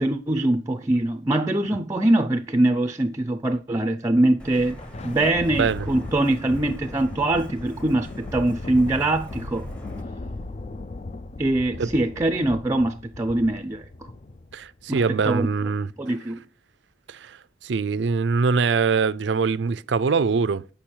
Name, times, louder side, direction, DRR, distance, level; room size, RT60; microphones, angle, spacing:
voice 1, 0.0-9.7 11.4-13.8 14.9-15.5 16.0-16.4, right 1 dB, 20° right, 0.5 m, -23 dB
Thunder, 4.4-15.1, left 2 dB, 35° left, 0.5 m, -38 dB
Truck, 4.4-10.0, equal, 5° left, 0.9 m, -42 dB
voice 2, 5.6-5.9 11.8-11.9 14.5-15.9 17.1-17.4 17.6-20.7, right 5 dB, 75° right, 0.5 m, -23 dB
8.6 x 5.3 x 4.5 m
head